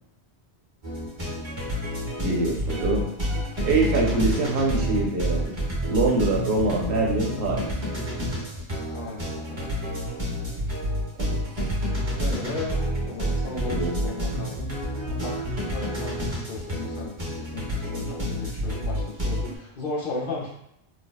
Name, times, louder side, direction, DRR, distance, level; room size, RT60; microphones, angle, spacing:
sound 1, 0.8-19.5, equal, 30° right, 0.6 m, -29 dB
voice 1, 2.2-3.1 3.7-5.6 5.9-7.7 11.1-11.3 13.7-14.1, right 2 dB, 65° right, -1 dB, 0.8 m, -24 dB
voice 2, 8.9-10.0 12.2-14.8 15.1-20.5, left 3 dB, 60° left, -3 dB, 0.6 m, -35 dB
3.3 x 2.0 x 2.2 m, 0.81 s
omnidirectional pair, 1.1 m